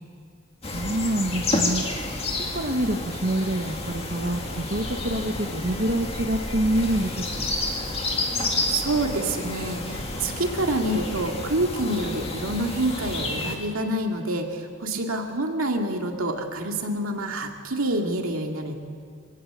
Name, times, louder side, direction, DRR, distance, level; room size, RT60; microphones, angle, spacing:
sound 1, 0.6-13.6, left 2 dB, 30° left, 2.2 m, -30 dB
voice 1, 0.7-1.8 2.5-7.4, right 1 dB, 45° right, 3 dB, 1.0 m, -26 dB
voice 2, 8.6-18.8, right 1 dB, 80° right, 3 dB, 2.3 m, -27 dB
24.0 x 16.5 x 8.0 m, 2.2 s
head